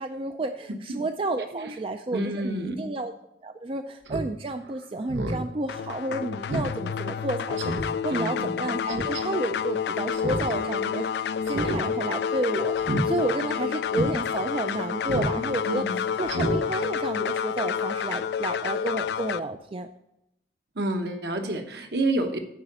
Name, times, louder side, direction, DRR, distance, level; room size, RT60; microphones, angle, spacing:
voice 1, 0.0-3.1 3.4-15.9 16.2-19.9, right 2 dB, 30° right, 7 dB, 0.4 m, -31 dB
voice 2, 2.1-2.9 8.1-8.7 15.7-16.0 20.7-22.4, right 1 dB, 65° right, 5 dB, 1.2 m, -29 dB
Speech synthesizer, 4.1-4.3 4.7-4.8 5.1-5.4 5.8-5.9 6.5-6.7 7.1-7.2 7.6-7.9 8.9-9.2 10.1-10.5 10.8-10.9 11.5-11.8 12.1-12.3 12.8-13.0 13.5-13.6 13.9-14.1 15.1-15.4 15.7-15.8 16.3-16.6 16.9-17.0, right 1 dB, 90° right, 1.1 m, -29 dB
sound 1, 5.7-19.4, left 7 dB, 70° left, 0.3 m, -29 dB
9.1 x 5.0 x 6.7 m, 0.86 s
head